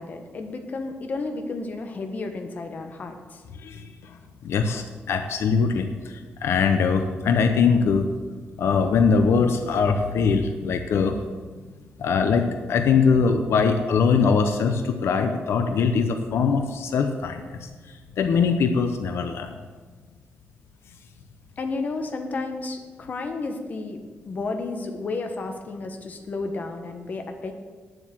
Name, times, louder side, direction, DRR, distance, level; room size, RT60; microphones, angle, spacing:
voice 1, 0.0-3.4 21.6-27.5, left 3 dB, 40° left, 5 dB, 1.2 m, -32 dB
voice 2, 3.6-4.2 4.4-8.1 8.6-11.2 12.0-19.5, left 5 dB, 80° left, 7 dB, 0.8 m, -22 dB
9.5 x 7.8 x 7.7 m, 1.4 s
wide cardioid pair, 150°, 4 cm